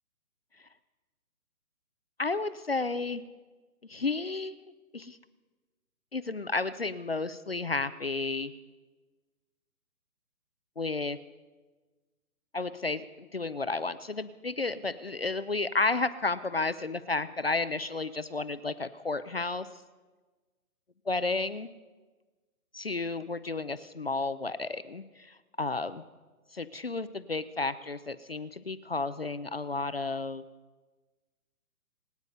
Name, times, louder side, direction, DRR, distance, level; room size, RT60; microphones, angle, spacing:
voice 1, 2.2-3.2 3.8-4.6 4.9-5.2 6.1-8.5 10.8-11.2 12.5-19.7 21.1-21.7 22.7-26.0 26.5-30.4, left 3 dB, 45° left, 13 dB, 0.5 m, -32 dB
26.5 x 9.4 x 5.3 m, 1.3 s
hypercardioid pair, 175°, 44 cm